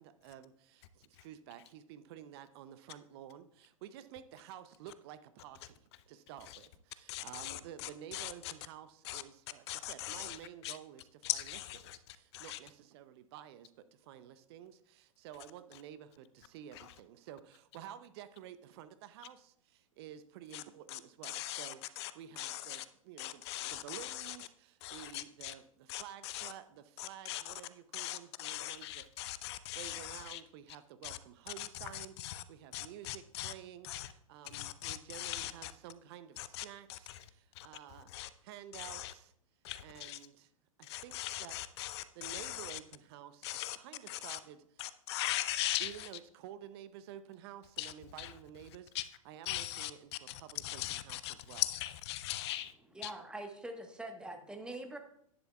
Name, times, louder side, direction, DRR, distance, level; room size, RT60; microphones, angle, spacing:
voice 1, 0.0-29.1 29.7-39.3 39.8-40.5 40.8-41.6 41.9-44.9 45.8-48.9 49.2-51.6, right 10 dB, 45° right, 0.6 m, -51 dB
voice 2, 7.1-8.5 9.0-9.2 9.7-10.8 11.2-12.6 16.7-16.9 20.5-20.6 20.9-22.9 23.2-24.4 24.8-25.5 25.9-26.5 27.0-27.5 27.9-30.4 31.0-31.2 31.6-32.4 32.7-33.5 33.8-34.1 34.5-35.7 36.4-37.2 37.5-37.7 38.1-38.3 38.7-39.1 39.6-40.2 40.8-42.8 43.4-43.8 44.1-44.4 44.8-46.1 47.8-48.3 48.9-49.1 49.5-49.9 50.3-52.7 53.0-53.1, left 15 dB, 50° left, 0.6 m, -40 dB
voice 3, 52.9-55.0, right 1 dB, 5° right, 1.2 m, -44 dB
10.5 x 10.5 x 2.3 m
figure-of-eight pair, 105°, 18 cm